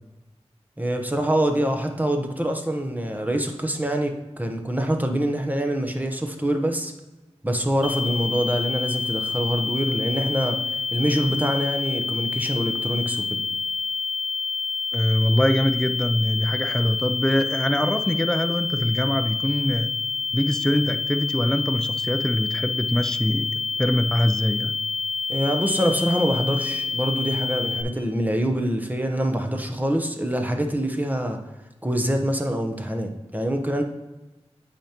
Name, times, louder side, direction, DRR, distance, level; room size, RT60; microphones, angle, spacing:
voice 1, 0.8-6.9 7.4-10.6 10.9-13.4 25.3-31.4 31.8-33.8, right 1 dB, 15° right, 4 dB, 0.9 m, -25 dB
sound 1, 7.8-27.8, left 4 dB, 80° left, 0.7 m, -28 dB
voice 2, 14.9-19.9 20.3-23.5 23.8-24.7, equal, 5° left, 8 dB, 0.4 m, -23 dB
8.7 x 5.1 x 2.9 m, 1.1 s
wide cardioid pair, 75°, 11 cm